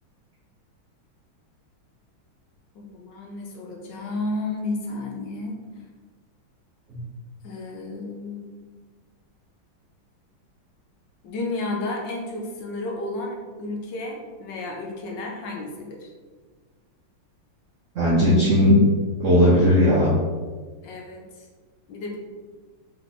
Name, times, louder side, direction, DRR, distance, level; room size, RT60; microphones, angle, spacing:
voice 1, 2.8-5.6 7.4-8.5 11.2-16.1 20.8-21.3 21.9-22.2, left 2 dB, 70° left, 0 dB, 1.3 m, -32 dB
voice 2, 17.9-18.8 19.2-20.1, equal, 65° right, -6 dB, 0.7 m, -17 dB
3.7 x 3.4 x 4.0 m, 1.4 s
omnidirectional pair, 2.3 m